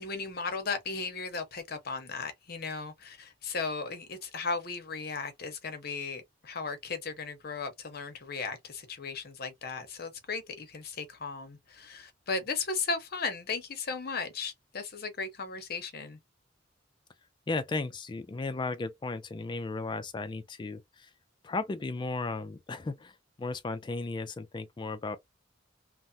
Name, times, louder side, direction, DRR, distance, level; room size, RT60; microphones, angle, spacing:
voice 1, 0.0-16.2, left 4 dB, 55° left, 0.8 m, -36 dB
voice 2, 17.5-21.1 21.4-25.2, left 3 dB, 25° left, 0.3 m, -35 dB
3.3 x 2.0 x 2.6 m
head